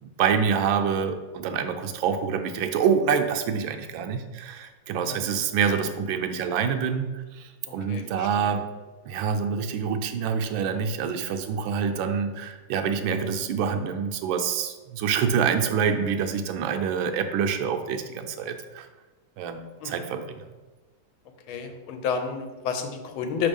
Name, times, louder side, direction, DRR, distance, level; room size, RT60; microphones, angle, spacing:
voice 1, 0.0-8.7 9.1-18.9 19.4-20.4, right 7 dB, 80° right, 6 dB, 1.3 m, -26 dB
voice 2, 7.7-8.5 19.8-20.1 21.5-23.5, left 6 dB, 90° left, 6 dB, 1.5 m, -31 dB
5.4 x 3.5 x 5.2 m, 1.2 s
omnidirectional pair, 2.2 m